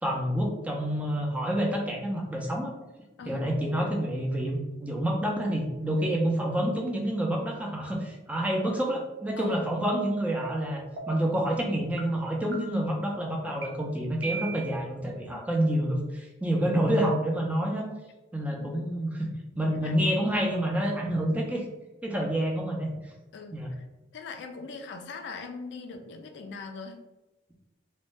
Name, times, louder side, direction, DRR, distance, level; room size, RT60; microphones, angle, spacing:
voice 1, 0.0-2.8 3.2-17.9 18.3-19.3 19.6-21.6 22.0-23.1 23.5-23.7, right 1 dB, 10° right, -1 dB, 0.4 m, -28 dB
voice 2, 3.2-3.5 9.4-9.7 15.3-15.4 18.5-18.8 19.7-19.9 23.3-23.8 24.1-27.0, left 4 dB, 65° left, 6 dB, 0.3 m, -41 dB
sound 1, 10.4-10.5 11.0-11.3 12.0-12.1 12.5-13.0 13.6-13.7 14.2-14.8, right 4 dB, 70° right, 0.5 m, -38 dB
2.6 x 2.1 x 3.1 m, 1.0 s
head